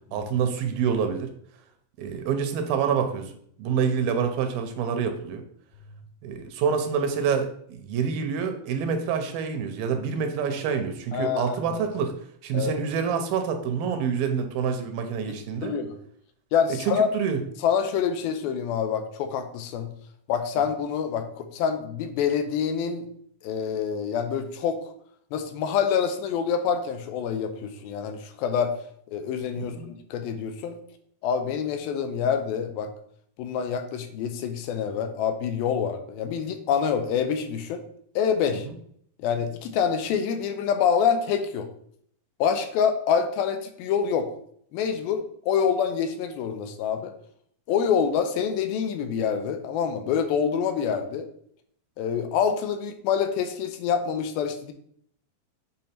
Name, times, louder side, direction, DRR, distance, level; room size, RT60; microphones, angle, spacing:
voice 1, 0.1-1.3 2.0-3.3 3.6-5.4 6.2-12.1 12.4-15.7 16.7-17.4 29.6-29.9 38.7-38.8, right 6 dB, 80° right, 7 dB, 2.5 m, -27 dB
voice 2, 11.1-11.8 12.5-12.7 15.3-15.9 16.5-17.1 17.6-19.9 20.3-23.1 23.4-24.8 25.3-28.7 29.1-30.8 31.2-32.9 33.4-37.8 38.2-38.7 39.2-41.7 42.4-44.3 44.7-47.1 47.7-51.3 52.0-54.7, left 7 dB, 80° left, 7 dB, 2.5 m, -26 dB
7.7 x 3.6 x 4.4 m, 0.65 s
omnidirectional pair, 4.3 m